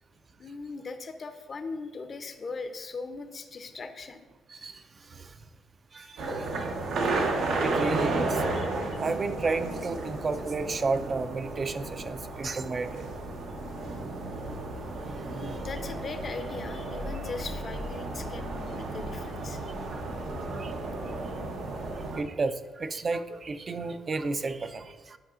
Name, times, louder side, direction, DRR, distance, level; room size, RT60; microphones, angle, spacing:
voice 1, 0.4-4.2 7.0-7.9 8.4-9.0 15.3-19.7, left 4 dB, 40° left, 8 dB, 0.6 m, -40 dB
voice 2, 4.5-5.4 5.9-7.3 7.6-8.5 9.0-13.1 15.1-15.6 18.8-18.9 19.9-20.0 20.5-20.7 22.1-25.2, right 3 dB, 40° right, 10 dB, 0.4 m, -33 dB
sound 1, 6.2-22.2, right 2 dB, 80° right, 0.8 m, -33 dB
10.5 x 4.8 x 2.5 m, 1.3 s
cardioid pair, 90°, 0 cm